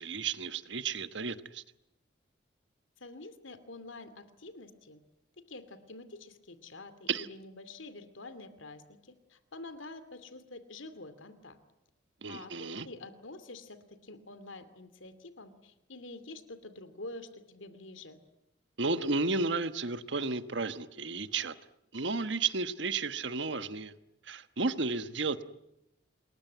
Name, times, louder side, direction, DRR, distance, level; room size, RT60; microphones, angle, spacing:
voice 1, 0.0-1.6 7.1-7.3 12.2-12.9 18.8-21.5 21.9-23.9 24.2-25.4, right 4 dB, 70° right, 11 dB, 1.2 m, -33 dB
voice 2, 3.0-5.0 5.4-11.6 12.3-18.2, left 2 dB, 85° left, 12 dB, 2.6 m, -47 dB
28.5 x 21.5 x 9.3 m, 0.87 s
head